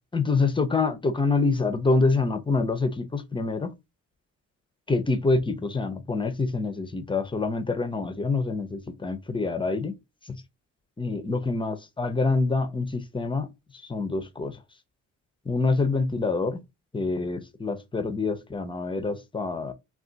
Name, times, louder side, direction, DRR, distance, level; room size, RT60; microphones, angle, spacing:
voice 1, 0.1-3.7 4.9-10.0 10.2-10.4 11.0-14.6 15.5-16.6 16.9-19.7, left 3 dB, 15° left, 0.6 m, -26 dB
2.4 x 2.4 x 3.8 m
cardioid pair, 90°, 30 cm